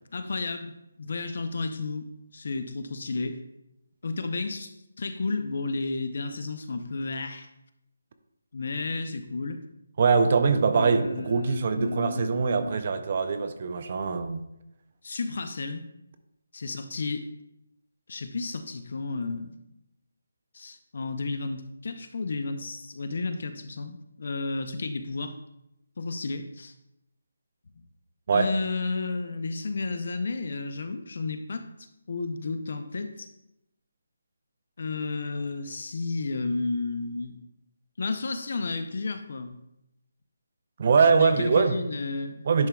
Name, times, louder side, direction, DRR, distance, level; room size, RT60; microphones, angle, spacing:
voice 1, 0.1-3.4 4.0-7.5 8.5-9.6 10.7-12.8 15.0-15.8 16.5-17.3 18.1-19.5 20.5-25.3 26.0-26.7 28.3-31.7 32.1-33.3 34.8-37.4 38.0-39.5 41.1-42.4, left 3 dB, 45° left, 9 dB, 0.5 m, -32 dB
voice 2, 10.0-14.4 28.3-28.5 40.8-41.8 42.5-42.7, right 5 dB, 30° right, 9 dB, 0.4 m, -23 dB
10.5 x 4.4 x 2.3 m, 0.84 s
hypercardioid pair, 175°, 0 cm